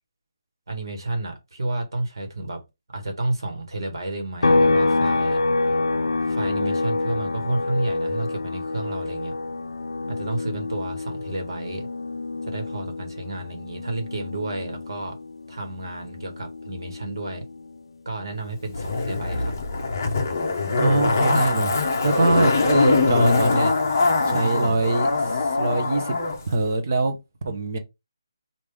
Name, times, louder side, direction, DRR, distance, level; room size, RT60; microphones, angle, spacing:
voice 1, 0.7-2.6 2.9-5.4 6.3-9.3 10.1-11.9 12.5-15.2 15.5-17.4 18.0-19.5 24.3-24.8, right 2 dB, 55° right, 1.3 m, -31 dB
sound 1, 4.4-18.0 18.3-20.5, left 2 dB, 80° left, 0.5 m, -27 dB
Zipper (clothing), 18.7-26.4 26.7-26.8, left 3 dB, 30° left, 0.8 m, -22 dB
voice 2, 20.8-21.7 22.0-23.7 24.2-26.2 26.5-27.8, right 2 dB, 30° right, 0.7 m, -23 dB
5.2 x 2.5 x 3.4 m
hypercardioid pair, 180°, 3 cm